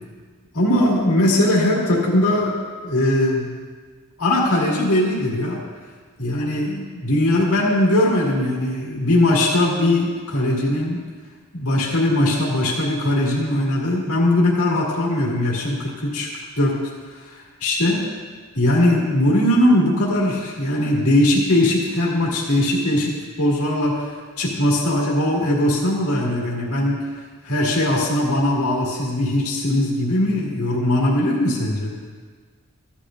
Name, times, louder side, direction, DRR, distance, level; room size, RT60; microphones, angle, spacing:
voice 1, 0.5-3.5 4.2-5.6 6.2-11.0 11.5-16.3 16.6-16.8 17.1-18.0 18.5-24.1 24.4-27.1 27.4-31.9, left 1 dB, 80° left, -4 dB, 1.9 m, -20 dB
15.0 x 10.0 x 2.5 m, 1.5 s
head